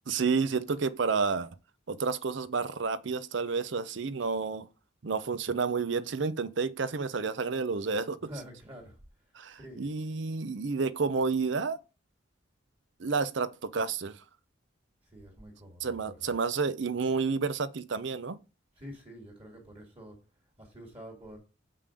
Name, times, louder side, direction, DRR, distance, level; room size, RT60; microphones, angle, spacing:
voice 1, 0.1-1.5 1.9-4.7 5.0-8.2 9.3-11.8 13.0-14.2 15.8-18.4, right 4 dB, 60° right, 0.6 m, -30 dB
voice 2, 8.2-9.0 9.5-9.9 15.1-16.3 18.8-20.2 20.6-21.4, equal, 30° right, 2.1 m, -47 dB
6.8 x 5.6 x 5.0 m
head